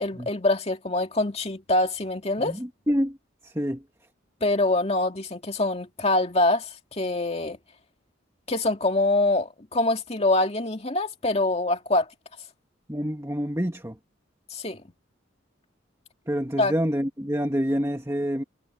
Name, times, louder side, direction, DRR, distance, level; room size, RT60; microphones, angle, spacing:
voice 1, 0.0-2.6 4.4-7.6 8.5-12.1 14.5-14.8 16.6-16.7, left 2 dB, 30° left, 2.3 m, -24 dB
voice 2, 2.4-3.2 3.4-3.8 12.9-14.0 16.3-18.4, equal, 15° right, 1.9 m, -27 dB
head